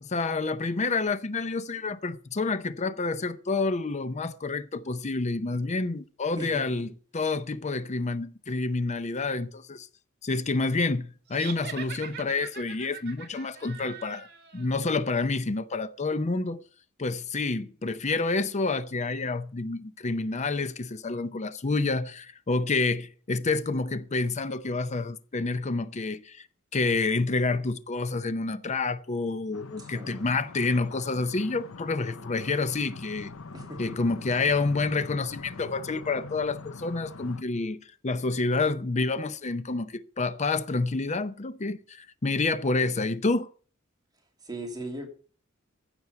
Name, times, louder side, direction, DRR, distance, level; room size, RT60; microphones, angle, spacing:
voice 1, 0.0-9.9 10.2-14.3 14.5-16.6 17.0-26.4 26.7-33.3 33.8-43.5, left 3 dB, 35° left, 0.6 m, -28 dB
voice 2, 6.4-6.9 29.8-30.3 33.5-33.8 34.1-34.2 44.4-45.1, right 1 dB, 20° right, 2.7 m, -38 dB
sound 1, 11.3-14.7, right 7 dB, 55° right, 2.1 m, -42 dB
sound 2, 29.5-37.4, left 3 dB, 85° left, 0.8 m, -43 dB
15.0 x 6.1 x 6.8 m
head